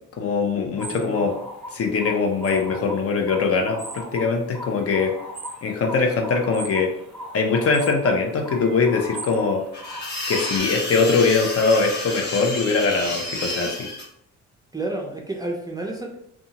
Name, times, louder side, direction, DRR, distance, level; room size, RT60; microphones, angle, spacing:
voice 1, 0.2-1.3 1.7-5.1 5.6-6.9 7.3-9.6 10.3-13.9, left 4 dB, 50° left, 3 dB, 0.6 m, -22 dB
sound 1, 0.8-10.6, equal, 5° left, 1.0 m, -38 dB
voice 2, 0.9-1.2 14.7-16.2, right 2 dB, 15° right, 0 dB, 0.4 m, -30 dB
sound 2, 9.7-14.0, left 2 dB, 35° left, 1.2 m, -30 dB
2.6 x 2.4 x 2.8 m, 0.73 s
cardioid pair, 90°, 30 cm